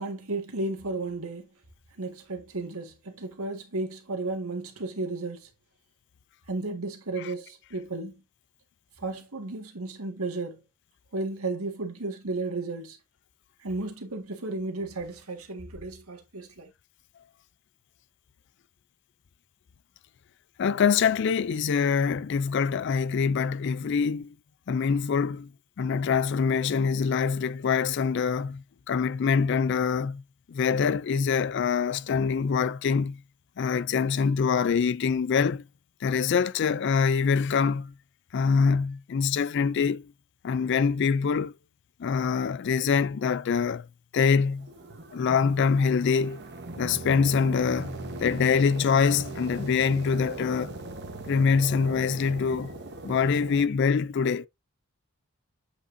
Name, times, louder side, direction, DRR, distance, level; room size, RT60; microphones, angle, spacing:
voice 1, 0.0-1.5 2.0-5.5 6.5-8.2 9.0-10.6 11.1-13.0 13.6-16.7, right 2 dB, 85° right, 1.8 m, -33 dB
voice 2, 20.6-24.3 24.7-25.5 25.8-30.2 30.5-33.2 33.6-35.6 36.0-37.9 38.3-40.1 40.4-41.5 42.0-43.9 44.1-44.7 45.1-46.4 46.8-50.8 51.3-52.7 53.0-54.5, left 6 dB, 55° left, 0.3 m, -24 dB
sound 1, 44.4-53.6, right 2 dB, 50° right, 1.1 m, -40 dB
8.2 x 5.2 x 2.6 m
head